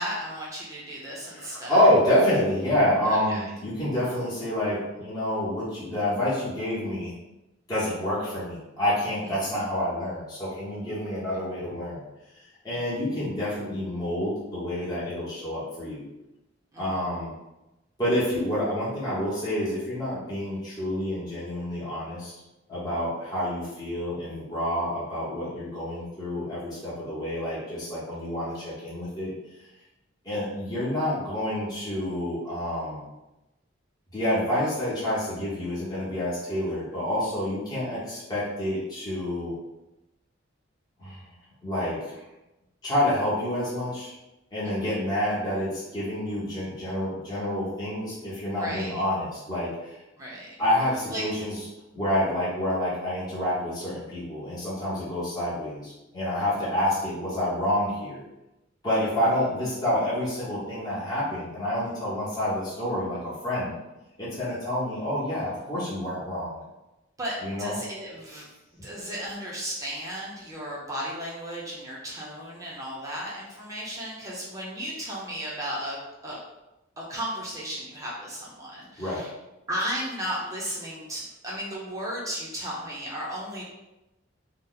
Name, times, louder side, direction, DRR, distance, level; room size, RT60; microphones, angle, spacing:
voice 1, 0.0-1.8 3.0-3.4 9.4-9.5 12.7-13.0 16.7-17.0 44.6-44.9 48.6-49.0 50.2-50.5 51.1-51.2 67.2-68.4 68.8-76.0 76.2-76.4 77.0-79.3 79.7-83.6, equal, 15° right, -5 dB, 0.5 m, -35 dB
voice 2, 1.3-7.1 7.7-12.0 12.6-16.0 16.8-17.3 18.0-22.3 22.7-29.3 30.2-33.0 34.1-39.5 41.0-41.3 41.6-42.2 42.8-44.1 44.5-50.0 50.6-51.6 51.9-58.2 58.8-63.7 64.2-66.6 67.4-67.8 79.0-79.2, left 1 dB, 20° left, -10 dB, 0.9 m, -28 dB
2.7 x 2.0 x 3.9 m, 0.98 s
head